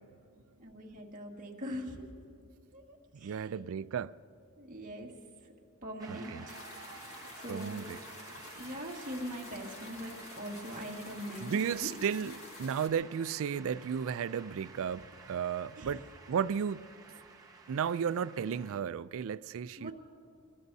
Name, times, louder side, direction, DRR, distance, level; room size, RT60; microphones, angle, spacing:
voice 1, 0.6-2.0 2.7-3.5 4.6-5.1 5.8-6.6 7.0-7.9 8.2-11.9 15.8-15.9 19.8-19.9, equal, 40° right, 1.8 m, -42 dB
voice 2, 3.1-4.1 6.1-6.5 7.5-8.0 11.4-16.9 17.7-19.9, right 7 dB, 65° right, 0.4 m, -34 dB
Shout / Cheering / Applause, 6.0-18.8, right 4 dB, 15° right, 1.2 m, -52 dB
sound 1, 6.5-12.9, left 3 dB, 65° left, 1.6 m, -50 dB
23.0 x 21.0 x 2.7 m
head